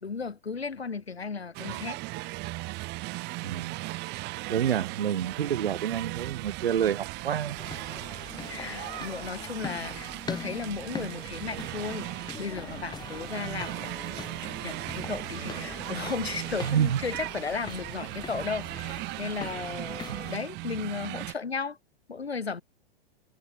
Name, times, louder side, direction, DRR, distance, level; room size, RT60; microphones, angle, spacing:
voice 1, 0.0-2.0 8.5-21.8 22.1-22.6, left 5 dB, 80° left, 4.1 m, -35 dB
sound 1, 1.5-21.3, right 23 dB, 35° right, 2.1 m, -37 dB
voice 2, 3.4-3.8 4.5-7.6 16.6-17.0 20.1-20.2, right 9 dB, 65° right, 3.1 m, -28 dB
sound 2, 7.6-20.4, left 5 dB, 15° left, 3.5 m, -42 dB
figure-of-eight pair, 105°, 31 cm